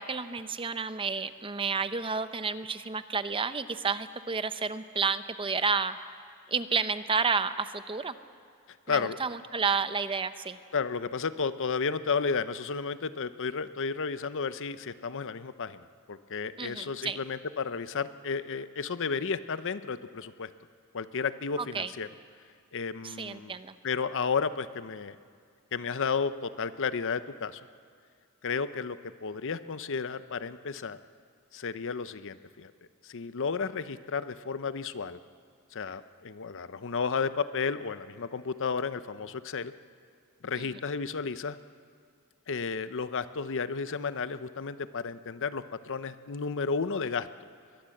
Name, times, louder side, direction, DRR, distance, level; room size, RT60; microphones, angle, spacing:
voice 1, 0.0-6.0 6.5-8.2 8.9-10.6 16.6-17.2 21.6-21.9 23.0-23.8 40.5-40.7, right 5 dB, 25° right, 12 dB, 0.7 m, -31 dB
voice 2, 8.9-9.2 10.7-20.5 20.9-22.1 22.7-23.5 23.8-25.2 25.7-27.6 28.4-31.0 31.5-32.7 33.0-35.2 35.7-39.7 40.4-41.6 42.5-47.3, left 5 dB, 60° left, 13 dB, 0.7 m, -32 dB
22.0 x 20.5 x 7.8 m, 2.2 s
head